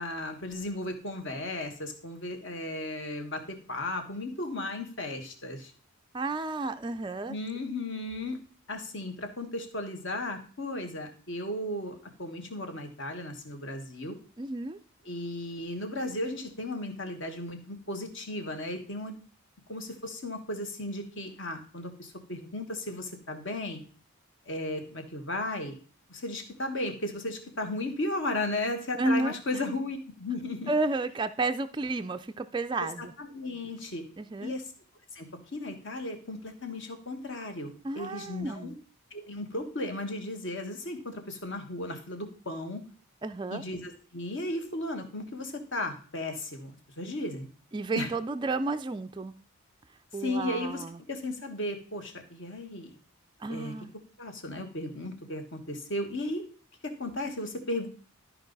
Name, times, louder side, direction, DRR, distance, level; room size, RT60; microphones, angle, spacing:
voice 1, 0.0-5.7 7.3-8.4 8.7-14.2 15.0-19.2 19.7-23.8 24.5-25.8 26.1-30.7 32.8-34.0 34.4-34.7 35.1-38.8 39.1-42.8 43.5-47.5 47.9-48.1 50.2-52.9 53.4-53.7 54.2-56.4 56.8-57.9, left 1 dB, 55° left, 1.4 m, -35 dB
voice 2, 6.1-7.3 14.4-14.8 29.0-29.3 30.7-33.1 34.2-34.5 37.8-38.8 43.2-43.6 47.7-49.3 50.1-51.0 53.4-53.9, right 2 dB, 20° right, 0.3 m, -31 dB
12.5 x 4.7 x 3.9 m
head